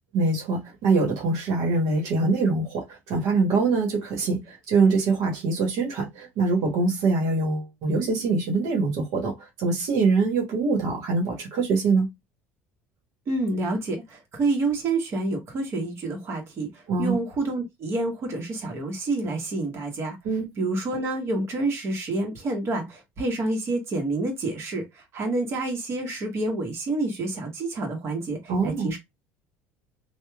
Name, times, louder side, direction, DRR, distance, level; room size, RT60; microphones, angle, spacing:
voice 1, 0.1-9.3 9.6-12.1 16.9-17.1 20.2-20.5 28.5-28.9, right 3 dB, 70° right, 1.1 m, -24 dB
voice 2, 13.3-20.2 20.6-29.0, right 2 dB, 45° right, 1.1 m, -28 dB
2.8 x 2.2 x 2.3 m
hypercardioid pair, 80°, 6 cm